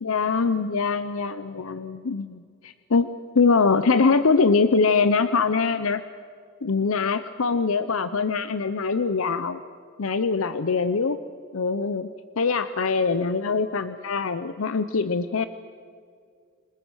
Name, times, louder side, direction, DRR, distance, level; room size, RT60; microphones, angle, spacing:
voice 1, 0.0-6.0 6.6-9.6 10.0-11.2 11.5-12.1 12.4-15.5, left 4 dB, 80° left, 11 dB, 0.7 m, -23 dB
27.0 x 20.5 x 6.4 m, 2.2 s
head